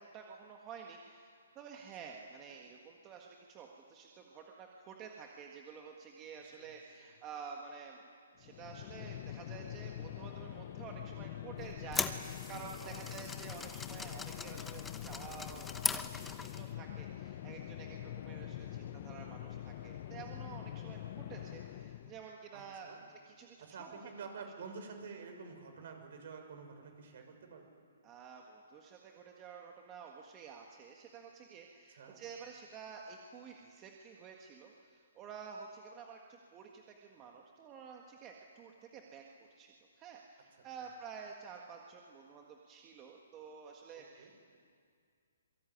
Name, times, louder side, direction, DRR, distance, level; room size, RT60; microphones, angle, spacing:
voice 1, 0.0-8.1 8.4-23.7 28.0-39.2 39.6-44.3, right 6 dB, 20° right, 1 dB, 1.7 m, -50 dB
voice 2, 6.6-7.1 12.8-13.2 18.3-18.9 22.5-23.0 23.6-27.6 31.9-32.2 43.9-44.3, right 5 dB, 50° right, 5 dB, 6.1 m, -50 dB
sound 1, 8.4-22.3, left 12 dB, 35° left, 0.7 m, -45 dB
sound 2, 11.6-16.7, left 4 dB, 5° left, 1.0 m, -40 dB
27.0 x 23.0 x 9.5 m, 2.3 s
hypercardioid pair, 160°, 0 cm